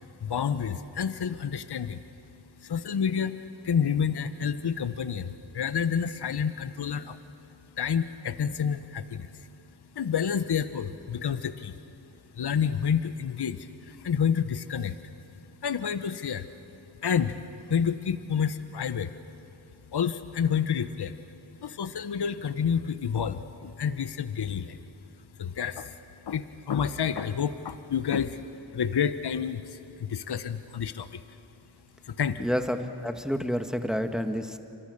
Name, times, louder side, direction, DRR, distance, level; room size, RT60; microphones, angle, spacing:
voice 1, 0.2-2.0 2.6-7.2 7.8-9.5 9.9-11.8 12.3-15.0 15.6-16.5 17.0-17.4 17.7-19.1 19.9-21.2 21.6-24.8 25.4-26.0 26.3-28.4 28.7-31.2 32.0-32.4, left 7 dB, 55° left, 12 dB, 1.1 m, -29 dB
voice 2, 32.4-34.6, equal, ahead, 6 dB, 1.9 m, -29 dB
28.0 x 26.0 x 6.8 m, 2.8 s
cardioid pair, 40°, 47 cm